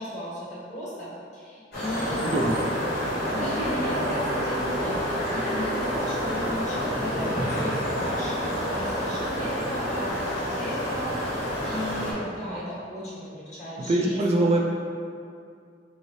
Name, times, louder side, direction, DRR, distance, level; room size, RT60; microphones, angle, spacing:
voice 1, 0.0-2.7 3.2-14.2, equal, 40° left, -8 dB, 1.2 m, -35 dB
sound 1, 1.7-12.1, equal, 60° left, 1.3 m, -28 dB
voice 2, 2.2-2.6 13.8-14.6, right 2 dB, 35° right, -1 dB, 0.3 m, -23 dB
4.3 x 3.0 x 2.7 m, 2.3 s
head